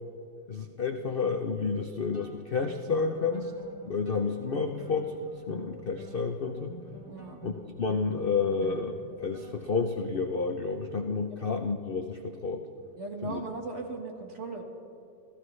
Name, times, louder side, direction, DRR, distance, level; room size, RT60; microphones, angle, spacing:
voice 1, 0.5-3.5 3.8-6.7 7.4-7.5 7.8-12.6 13.2-13.4, left 4 dB, 60° left, 5 dB, 0.6 m, -30 dB
sound 1, 2.1-9.8, right 2 dB, 90° right, 3.5 m, -49 dB
voice 2, 7.1-7.4 13.0-14.6, right 3 dB, 40° right, 2 dB, 1.7 m, -38 dB
28.5 x 14.5 x 3.2 m, 2.4 s
omnidirectional pair, 1.9 m